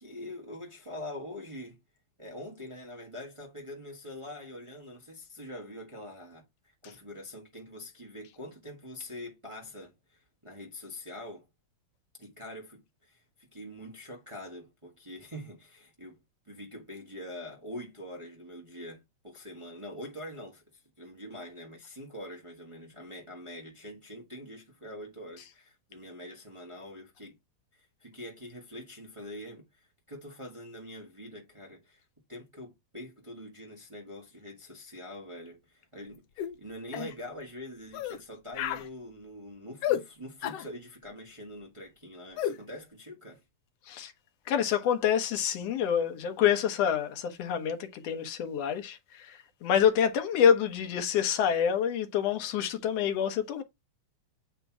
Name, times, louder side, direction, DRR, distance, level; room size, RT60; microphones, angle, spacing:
voice 1, 0.0-1.8 2.2-6.4 6.8-11.5 12.2-16.2 16.5-27.4 27.7-32.0 32.3-43.4, left 1 dB, 25° right, 0.6 m, -44 dB
sound 1, 36.4-36.5 36.9-37.1 37.9-38.2 38.5-38.9 39.8-40.0 40.4-40.7 42.4-42.6, left 11 dB, 80° left, 1.4 m, -31 dB
voice 2, 44.5-53.6, left 8 dB, 65° left, 1.9 m, -27 dB
8.1 x 2.9 x 4.7 m
omnidirectional pair, 3.5 m